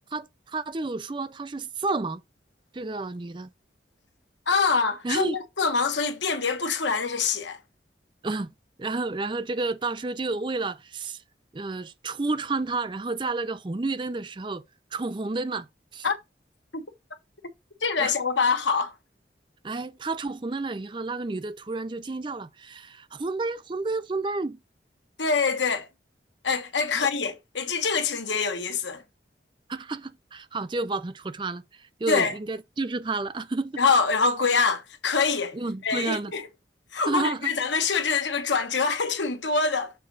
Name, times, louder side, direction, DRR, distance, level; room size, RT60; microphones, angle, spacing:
voice 1, 0.1-2.2 2.7-3.5 5.0-5.4 8.2-8.5 8.8-11.2 11.5-14.6 14.9-15.7 15.9-16.1 18.0-18.1 19.6-24.6 26.9-27.1 29.7-33.8 35.5-36.3 37.1-37.5, right 3 dB, 25° right, 0.4 m, -30 dB
voice 2, 4.5-7.6 16.0-16.1 16.7-16.8 17.8-18.9 25.2-25.9 26.4-29.0 32.1-32.3 33.8-35.6 35.8-36.5 36.9-39.9, left 4 dB, 90° left, 1.2 m, -25 dB
6.7 x 3.6 x 5.4 m
head